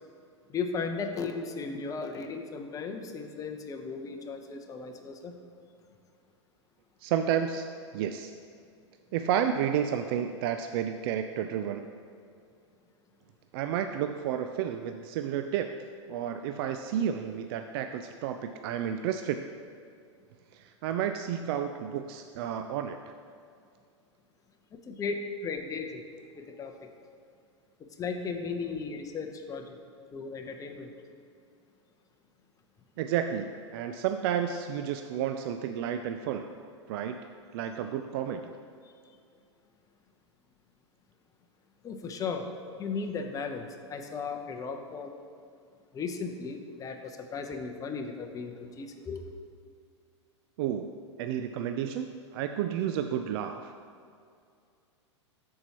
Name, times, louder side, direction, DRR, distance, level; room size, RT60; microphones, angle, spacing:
voice 1, 0.5-5.3 24.9-25.1 25.4-26.0 26.4-26.9 28.0-29.8 30.1-30.9 41.8-42.5 42.8-45.1 45.9-49.3, left 5 dB, 20° left, 4 dB, 0.8 m, -36 dB
voice 2, 7.0-7.7 7.9-8.3 9.1-11.9 13.5-19.4 20.5-23.1 33.0-36.5 36.9-37.2 37.5-38.5 50.6-50.9 51.2-53.8, right 9 dB, 50° right, 7 dB, 0.4 m, -31 dB
13.0 x 4.6 x 3.0 m, 2.3 s
hypercardioid pair, 105°, 15 cm